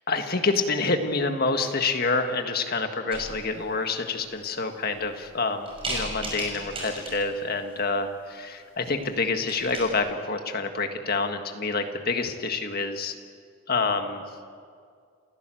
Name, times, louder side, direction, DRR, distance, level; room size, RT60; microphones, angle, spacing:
voice 1, 0.1-13.1 13.7-14.2, left 3 dB, 45° left, 6 dB, 1.7 m, -27 dB
sound 1, 3.1-3.7 4.3-4.4 4.9-5.3 5.7-7.4 8.8-9.1 9.3-9.9, right 2 dB, 25° right, 6.3 m, -35 dB
28.5 x 16.0 x 7.7 m, 2.2 s
head